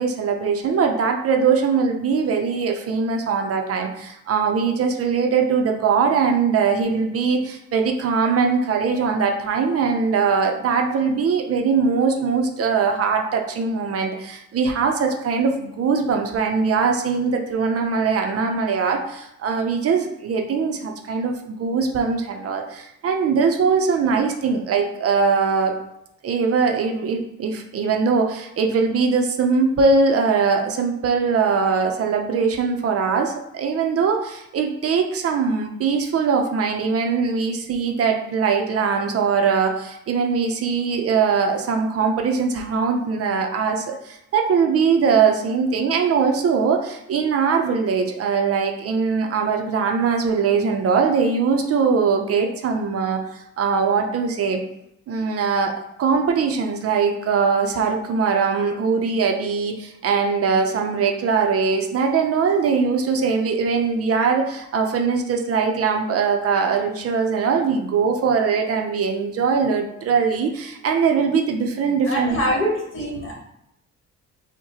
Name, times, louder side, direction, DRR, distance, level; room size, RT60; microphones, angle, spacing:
voice 1, 0.0-25.7 26.2-54.6 55.1-72.6, right 5 dB, 50° right, 3 dB, 0.5 m, -21 dB
voice 2, 72.0-73.3, equal, 45° left, -2 dB, 1.3 m, -24 dB
4.6 x 2.1 x 2.8 m, 0.81 s
cardioid pair, 90°, 30 cm